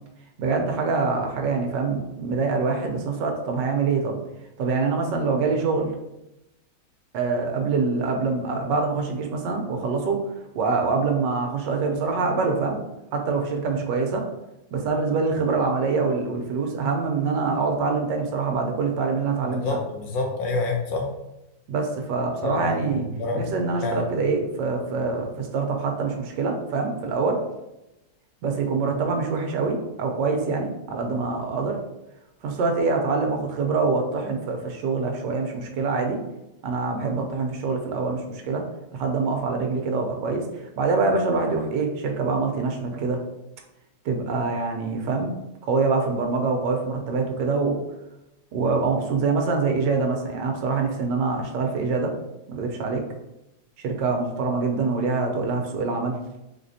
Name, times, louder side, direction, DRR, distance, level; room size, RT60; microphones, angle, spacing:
voice 1, 0.4-4.1 4.6-5.9 7.1-10.2 10.5-12.8 13.1-14.2 14.7-19.6 21.7-23.1 23.3-27.4 28.4-31.8 32.4-36.2 36.6-38.6 38.9-40.4 40.8-43.2 44.0-45.3 45.6-47.8 48.5-52.1 52.5-53.0 53.8-56.2, right 4 dB, 75° right, 3 dB, 1.3 m, -25 dB
voice 2, 19.5-21.0 22.4-23.5 23.8-24.1, left 3 dB, 80° left, 1 dB, 1.5 m, -27 dB
4.1 x 3.5 x 2.6 m, 0.92 s
omnidirectional pair, 2.0 m